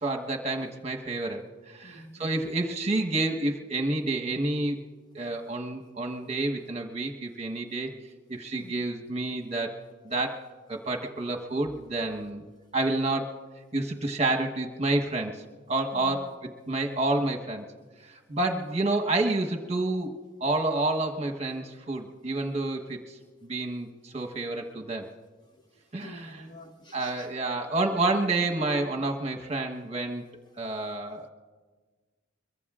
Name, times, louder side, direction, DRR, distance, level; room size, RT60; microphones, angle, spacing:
voice 1, 0.0-4.8 5.1-7.9 8.3-12.4 12.7-13.3 13.7-15.4 15.7-17.6 18.1-20.1 20.4-23.2 23.4-25.1 25.9-26.4 26.9-30.2 30.6-31.3, right 2 dB, 35° right, 2 dB, 1.1 m, -29 dB
voice 2, 1.8-2.5 8.6-8.8 15.9-16.2 18.4-18.7 26.0-27.3, left 1 dB, 25° left, 5 dB, 0.9 m, -46 dB
23.5 x 22.5 x 2.5 m, 1.4 s
head